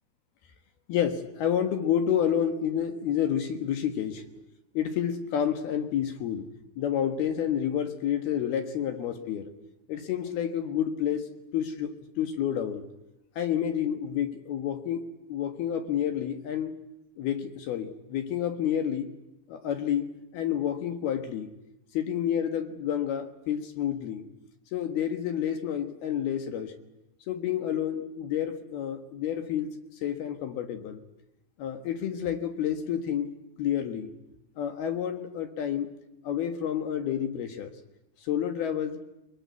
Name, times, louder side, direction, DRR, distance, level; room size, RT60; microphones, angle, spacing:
voice 1, 0.9-4.2 4.7-6.5 6.8-9.5 9.9-12.8 13.4-16.8 17.2-19.1 19.5-21.5 21.9-24.2 24.7-26.7 27.3-31.0 31.6-34.1 34.6-35.9 36.2-37.7 38.2-39.0, left 9 dB, 65° left, 7 dB, 2.9 m, -29 dB
23.0 x 22.0 x 9.5 m, 0.91 s
omnidirectional pair, 5.8 m